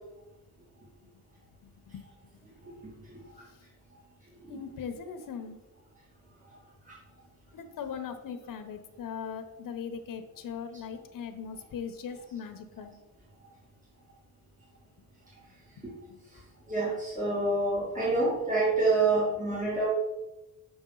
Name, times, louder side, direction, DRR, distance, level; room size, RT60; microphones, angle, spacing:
voice 1, 1.6-2.0 3.5-3.6 4.5-5.6 7.5-12.9 15.8-16.2, left 7 dB, 75° left, 7 dB, 0.9 m, -40 dB
voice 2, 16.7-19.9, right 2 dB, 25° right, -6 dB, 2.1 m, -27 dB
6.2 x 6.1 x 3.9 m, 0.99 s
wide cardioid pair, 145°, 34 cm